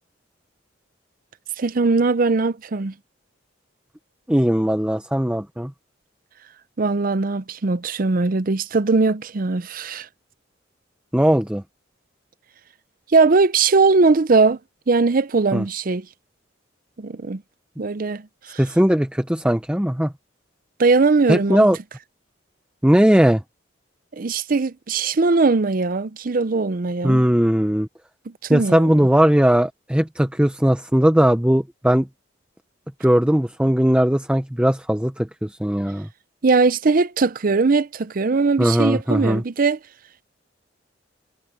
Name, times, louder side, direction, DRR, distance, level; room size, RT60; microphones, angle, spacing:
voice 1, 1.6-2.9 6.8-10.1 13.1-14.6 14.9-16.1 17.0-17.4 17.8-18.2 18.5-18.6 20.8-21.7 24.2-27.3 28.5-29.1 36.4-39.8, right 4 dB, 50° right, 0.6 m, -20 dB
voice 2, 4.3-5.7 11.1-11.6 15.5-15.6 18.6-20.1 21.3-21.8 22.8-23.4 27.0-27.9 28.5-32.1 33.0-36.1 38.6-39.4, equal, 5° right, 0.7 m, -18 dB
head